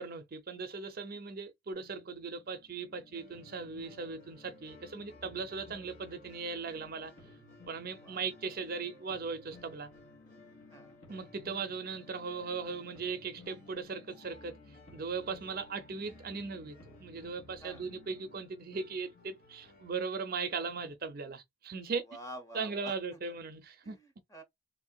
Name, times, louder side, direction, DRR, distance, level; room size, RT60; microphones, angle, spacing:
voice 1, 0.0-7.1 7.7-9.9 11.1-14.6 14.9-22.0 22.5-24.0, right 4 dB, 45° right, 0.5 m, -38 dB
sound 1, 1.7-20.8, left 3 dB, 80° left, 1.3 m, -58 dB
sound 2, 3.1-19.9, left 1 dB, 35° left, 1.2 m, -59 dB
voice 2, 22.1-23.3 23.8-24.4, right 1 dB, 15° left, 0.7 m, -49 dB
3.3 x 2.6 x 2.2 m
head